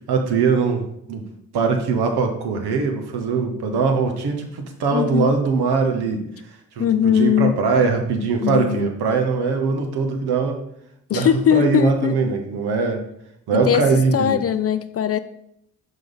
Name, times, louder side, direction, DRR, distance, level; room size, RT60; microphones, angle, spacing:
voice 1, 0.1-1.3 1.5-6.3 6.7-10.6 11.1-13.0 13.5-14.4, right 4 dB, 70° right, 4 dB, 1.2 m, -21 dB
voice 2, 4.9-5.3 6.8-7.6 8.4-8.9 11.1-12.1 13.6-13.9 14.1-15.2, left 9 dB, 35° left, 13 dB, 0.4 m, -20 dB
5.5 x 5.2 x 4.0 m, 0.76 s
hypercardioid pair, 40°, 40 cm